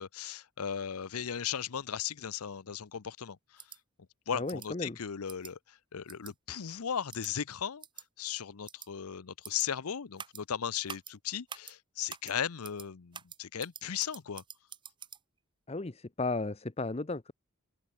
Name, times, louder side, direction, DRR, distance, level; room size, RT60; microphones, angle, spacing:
voice 1, 0.0-3.4 4.3-7.8 8.2-14.4, left 8 dB, 80° left, 0.7 m, -37 dB
sound 1, 3.6-3.8 4.5-4.7 5.3-5.5 6.1-6.3 7.1-7.3 7.8-8.0 8.7-8.9 9.4-9.7 10.2-10.4 10.9-11.1 11.5-11.7 12.1-12.3 12.6-12.9 13.1-15.2, right 7 dB, 20° right, 0.9 m, -46 dB
voice 2, 4.3-5.0 15.7-17.3, left 3 dB, 25° left, 0.7 m, -34 dB
open air
head